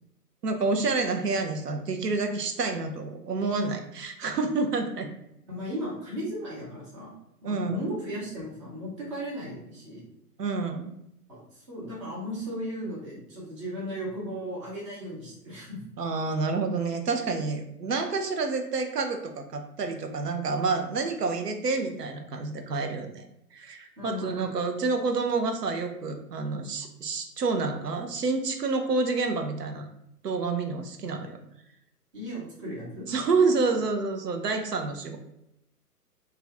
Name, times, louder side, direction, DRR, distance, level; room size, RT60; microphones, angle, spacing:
voice 1, 0.4-5.1 7.4-7.8 10.4-10.9 16.0-29.9 30.2-31.4 33.1-35.2, right 4 dB, 80° right, 5 dB, 0.6 m, -28 dB
voice 2, 5.5-7.2 7.4-10.0 11.3-15.8 24.0-24.4 32.1-33.1, equal, 20° right, -5 dB, 0.6 m, -36 dB
2.5 x 2.3 x 3.3 m, 0.82 s
figure-of-eight pair, 125°, 47 cm